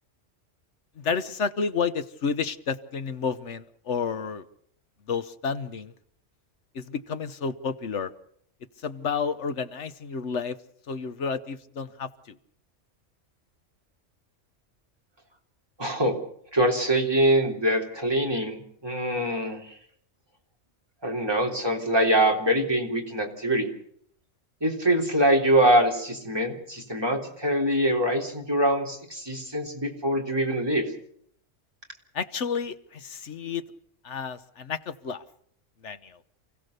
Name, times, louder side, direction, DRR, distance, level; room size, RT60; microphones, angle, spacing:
voice 1, 1.0-4.4 5.1-5.9 6.7-8.1 8.8-10.6 10.9-12.4 32.1-33.6 34.0-35.2 35.8-36.2, left 5 dB, 70° left, 11 dB, 1.4 m, -30 dB
voice 2, 15.8-16.2 16.5-19.7 21.0-23.7 24.6-30.9, right 1 dB, 20° right, 2 dB, 3.8 m, -24 dB
29.0 x 16.0 x 6.7 m, 0.68 s
omnidirectional pair, 1.3 m